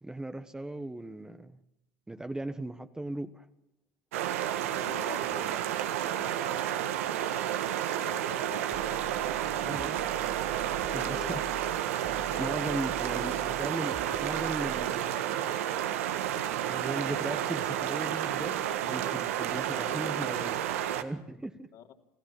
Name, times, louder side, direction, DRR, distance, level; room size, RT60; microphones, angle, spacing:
voice 1, 0.0-1.6 2.1-3.5 9.6-10.0 10.9-11.4 12.4-15.5 16.7-18.6 18.9-21.7, right 2 dB, 10° right, 9 dB, 1.4 m, -38 dB
sound 1, 4.1-21.0, right 11 dB, 85° right, 1.6 m, -31 dB
voice 2, 4.6-9.3 10.2-10.3 10.9-11.4 12.3-12.5 19.7-19.9 21.7-21.9, left 9 dB, 55° left, 3 dB, 3.5 m, -47 dB
sound 2, 8.7-14.9, right 6 dB, 30° right, 1.0 m, -47 dB
28.5 x 15.5 x 7.4 m, 0.88 s
supercardioid pair, 90°, 7 cm